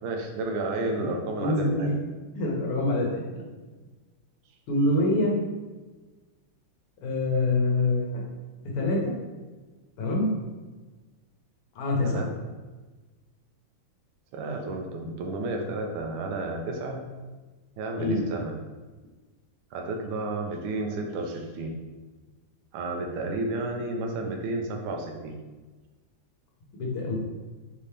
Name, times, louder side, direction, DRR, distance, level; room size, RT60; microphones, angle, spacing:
voice 1, 0.0-2.0 12.0-12.3 14.3-17.0 17.8-18.5 19.7-21.8 22.7-25.4, right 2 dB, 75° right, 2 dB, 1.5 m, -32 dB
voice 2, 1.4-1.9 2.4-3.4 4.7-5.4 7.0-8.2 8.6-9.1 10.0-10.3 11.8-12.2 18.0-18.2 26.8-27.2, left 2 dB, 85° left, -2 dB, 1.9 m, -25 dB
5.2 x 2.8 x 3.3 m, 1.3 s
omnidirectional pair, 2.4 m